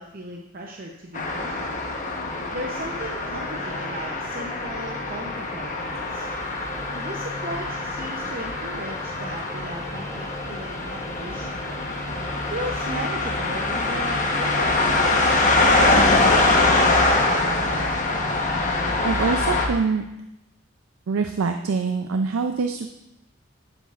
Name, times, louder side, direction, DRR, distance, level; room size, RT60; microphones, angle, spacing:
voice 1, 0.0-1.7 2.5-6.3 6.9-11.6 12.3-15.2, right 1 dB, 45° right, 0 dB, 0.7 m, -36 dB
sound 1, 1.1-19.7, left 2 dB, 40° left, 1.0 m, -24 dB
sound 2, 5.5-17.1, equal, 15° left, 0.8 m, -42 dB
voice 2, 19.0-20.0 21.1-22.9, right 4 dB, 80° right, 6 dB, 0.4 m, -24 dB
11.5 x 8.0 x 2.5 m, 0.92 s
head